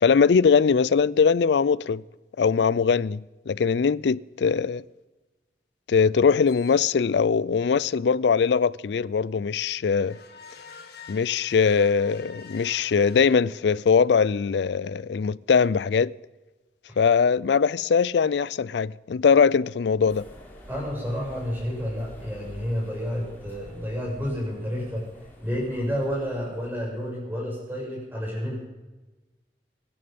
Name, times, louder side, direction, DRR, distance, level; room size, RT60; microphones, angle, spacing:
voice 1, 0.0-2.0 2.4-4.8 5.9-10.2 11.1-16.1 17.0-20.3, left 6 dB, 80° left, 0.4 m, -21 dB
sound 1, 6.5-7.2 10.0-13.9, left 6 dB, 65° left, 1.7 m, -47 dB
sound 2, 20.1-27.0, equal, 10° left, 3.8 m, -47 dB
voice 2, 20.7-25.1 25.4-28.6, equal, 10° right, 7.2 m, -30 dB
24.5 x 10.5 x 5.3 m
head